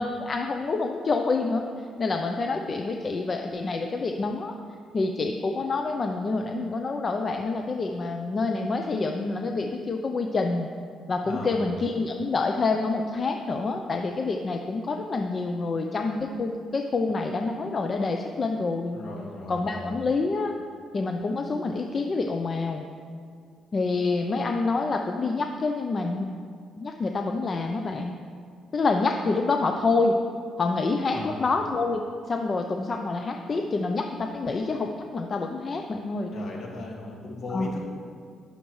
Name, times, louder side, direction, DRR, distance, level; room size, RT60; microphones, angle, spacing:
voice 1, 0.0-4.5 4.9-10.7 11.1-19.0 19.5-20.5 20.9-22.8 23.7-26.3 26.8-28.2 28.7-30.1 30.6-32.0 32.3-36.3 37.5-37.7, left 3 dB, 40° left, 4 dB, 0.6 m, -27 dB
voice 2, 11.2-11.6 18.9-19.9 31.1-31.3 36.3-37.8, left 2 dB, 60° left, -1 dB, 2.0 m, -37 dB
17.5 x 6.6 x 3.2 m, 2.1 s
cardioid pair, 90°, 0 cm